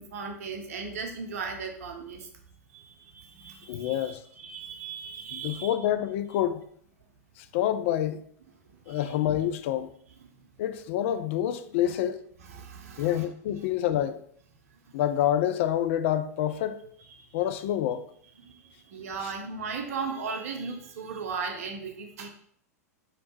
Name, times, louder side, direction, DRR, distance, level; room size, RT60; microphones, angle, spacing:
voice 1, 0.0-2.3 2.7-5.8 8.7-9.1 10.2-10.3 11.8-11.9 12.5-13.2 17.1-17.4 18.4-22.3, right 5 dB, 60° right, 0.7 m, -37 dB
voice 2, 3.7-4.2 5.3-6.6 7.4-8.2 8.9-9.9 10.6-12.2 13.0-14.2 14.9-16.8 17.3-18.0 19.2-19.3, left 11 dB, 50° left, 0.4 m, -27 dB
4.3 x 3.1 x 3.1 m
figure-of-eight pair, 90°, 9 cm